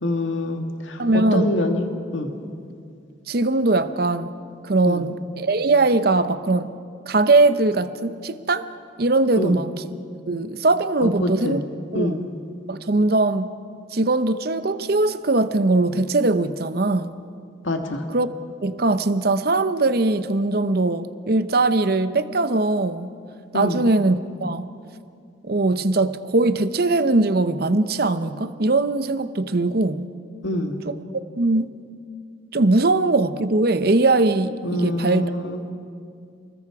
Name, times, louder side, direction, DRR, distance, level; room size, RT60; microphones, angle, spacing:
voice 1, 0.0-2.3 4.8-5.0 9.4-9.6 11.0-11.6 11.9-12.2 17.6-18.0 23.5-23.8 30.4-30.8 34.6-35.6, left 1 dB, 80° left, 5 dB, 1.6 m, -25 dB
voice 2, 1.0-1.5 3.3-4.3 4.6-6.7 7.1-8.7 9.0-9.7 10.3-11.6 11.9-12.3 12.7-13.5 13.9-17.1 18.1-18.3 18.6-23.1 23.5-24.7 25.4-30.1 30.8-31.0 31.4-31.7 32.5-35.3, right 2 dB, 50° right, 12 dB, 0.8 m, -20 dB
29.0 x 21.0 x 4.8 m, 2.3 s
head